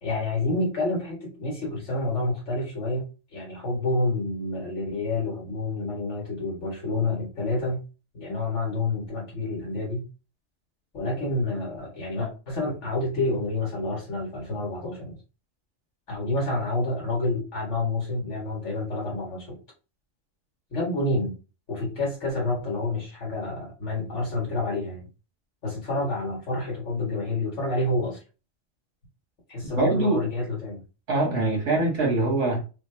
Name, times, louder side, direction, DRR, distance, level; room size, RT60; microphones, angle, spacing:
voice 1, 0.0-7.8 8.1-10.1 10.9-15.2 16.1-19.6 20.7-21.3 21.7-25.1 25.6-28.2 29.5-30.8 31.7-31.8, left 2 dB, 70° left, -2 dB, 1.6 m, -28 dB
voice 2, 29.8-30.2 31.1-32.6, right 2 dB, 85° right, 0 dB, 1.8 m, -23 dB
4.2 x 2.2 x 3.1 m, 0.32 s
omnidirectional pair, 1.3 m